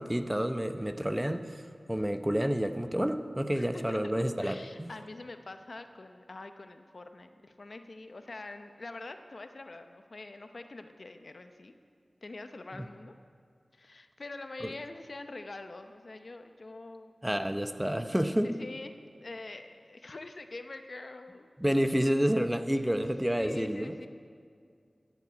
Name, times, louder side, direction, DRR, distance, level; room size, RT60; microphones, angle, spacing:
voice 1, 0.0-1.6 1.9-4.9 12.7-12.8 17.2-18.5 21.6-23.9, equal, 10° right, 8 dB, 0.8 m, -29 dB
voice 2, 3.5-11.7 12.2-13.1 13.7-17.1 18.4-18.9 19.2-21.5 23.4-24.1, left 2 dB, 65° left, 7 dB, 0.8 m, -45 dB
13.5 x 7.5 x 8.4 m, 2.2 s
cardioid pair, 40°, 0 cm